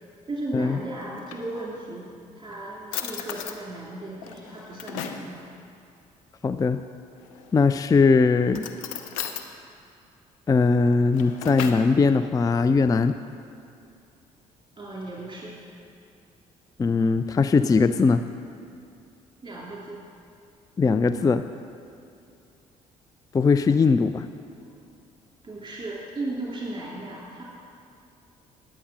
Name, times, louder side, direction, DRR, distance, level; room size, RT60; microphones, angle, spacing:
voice 1, 0.3-5.4 14.8-15.6 19.4-20.0 24.6-24.7 25.4-27.4, right 2 dB, 30° right, -5 dB, 2.5 m, -36 dB
Drawer open or close, 1.0-2.0 2.5-2.6 2.9-3.6 4.2-5.3 7.2-7.7 8.5-9.5 10.9-11.9, left 9 dB, 85° left, 0.5 m, -36 dB
voice 2, 6.4-6.8 7.5-8.7 10.5-13.2 16.8-18.2 20.8-21.4 23.3-24.3, left 4 dB, 20° left, 11 dB, 0.3 m, -20 dB
10.0 x 7.5 x 5.8 m, 2.4 s
hypercardioid pair, 50°, 17 cm